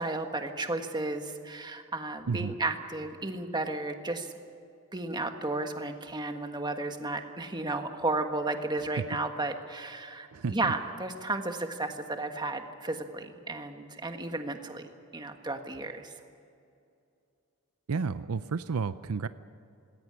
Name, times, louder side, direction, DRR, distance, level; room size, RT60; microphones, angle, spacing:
voice 1, 0.0-4.3 4.9-16.1, right 2 dB, 20° right, 5 dB, 1.5 m, -33 dB
voice 2, 17.9-19.3, right 5 dB, 70° right, 13 dB, 0.6 m, -31 dB
20.0 x 17.5 x 9.9 m, 2.5 s
head